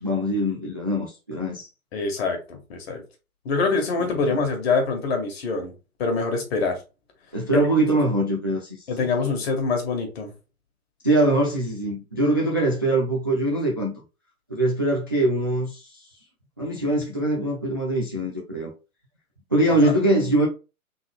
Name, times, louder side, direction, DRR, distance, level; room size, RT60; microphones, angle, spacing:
voice 1, 0.0-1.7 4.1-4.4 7.3-9.1 11.0-13.9 14.5-16.1 16.6-18.7 19.5-20.5, right 1 dB, 20° right, 0.3 m, -23 dB
voice 2, 1.9-3.0 3.4-5.7 6.0-6.8 8.9-10.3 19.8-19.9, left 4 dB, 45° left, 1.8 m, -25 dB
3.9 x 3.6 x 3.5 m
figure-of-eight pair, 130°, 43 cm